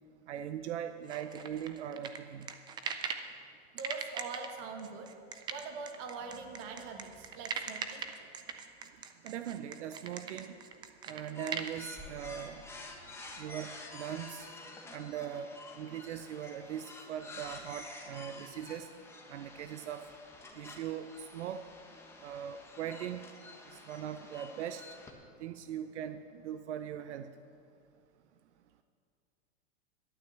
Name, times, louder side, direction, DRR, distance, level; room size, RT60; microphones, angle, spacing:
voice 1, 0.3-2.5 9.2-10.5 11.1-12.6 13.4-14.5 14.9-18.9 19.3-20.0 20.5-21.6 22.2-23.2 23.7-24.8 25.4-27.3, right 9 dB, 80° right, 9 dB, 0.7 m, -40 dB
sound 1, 1.1-3.3 3.8-11.7, right 6 dB, 15° right, 0.4 m, -40 dB
voice 2, 3.7-5.1 5.5-8.0, right 4 dB, 40° right, 4 dB, 1.8 m, -43 dB
sound 2, 11.3-25.1, left 2 dB, 5° left, 1.1 m, -49 dB
12.0 x 9.3 x 7.2 m, 2.4 s
supercardioid pair, 145°, 34 cm